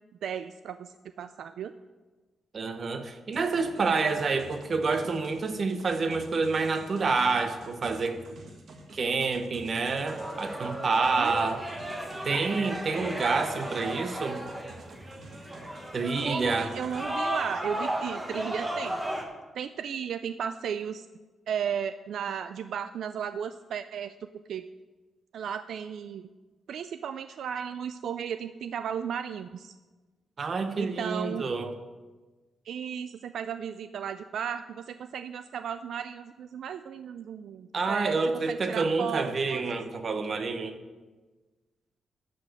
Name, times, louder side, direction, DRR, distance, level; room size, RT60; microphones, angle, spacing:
voice 1, 0.2-1.7 11.2-11.6 16.2-19.0 19.5-21.1 21.5-24.1 24.5-24.7 25.3-26.3 26.7-29.7 30.8-31.5 32.7-38.2 38.5-39.6, right 8 dB, 70° right, 11 dB, 0.3 m, -35 dB
voice 2, 2.5-8.2 8.9-11.6 12.2-14.4 15.9-16.7 30.4-31.8 37.7-40.8, right 4 dB, 40° right, 7 dB, 0.8 m, -28 dB
sound 1, 3.3-17.0, right 2 dB, 55° right, 1.5 m, -50 dB
sound 2, 10.0-19.2, right 1 dB, 10° right, 1.1 m, -35 dB
12.0 x 5.1 x 6.3 m, 1.3 s
wide cardioid pair, 155°, 0 cm